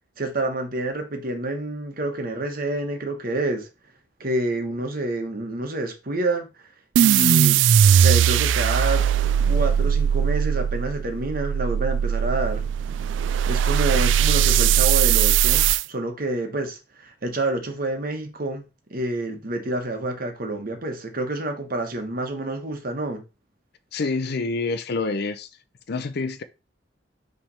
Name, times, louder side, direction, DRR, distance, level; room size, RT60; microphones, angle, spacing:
voice 1, 0.2-3.7 4.2-6.5 7.0-7.6 7.9-9.0 9.5-12.6 13.5-18.6 18.9-23.2, right 2 dB, 50° right, 1.3 m, -28 dB
sound 1, 6.9-15.8, right 9 dB, 80° right, 0.3 m, -19 dB
voice 2, 23.9-25.5 25.9-26.4, left 3 dB, 60° left, 0.5 m, -27 dB
5.8 x 3.4 x 5.5 m
head